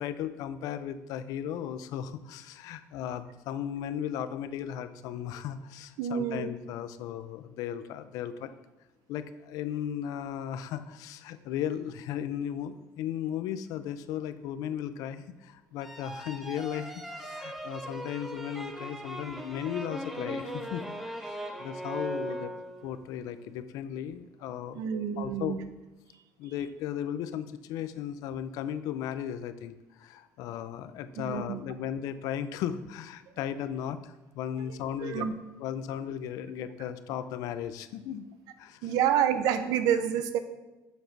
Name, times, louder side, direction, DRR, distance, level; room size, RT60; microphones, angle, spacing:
voice 1, 0.0-8.5 9.1-22.5 22.8-24.8 25.2-25.6 26.4-35.3 35.6-38.3 38.6-38.9, left 9 dB, 70° left, 12 dB, 0.4 m, -36 dB
voice 2, 6.0-6.5 24.8-25.6 31.2-31.6 35.0-35.3 38.8-40.4, right 9 dB, 75° right, 10 dB, 0.5 m, -28 dB
sound 1, 15.8-23.0, equal, 5° right, 0.4 m, -39 dB
7.1 x 4.4 x 3.9 m, 1.1 s
cardioid pair, 165°, 6 cm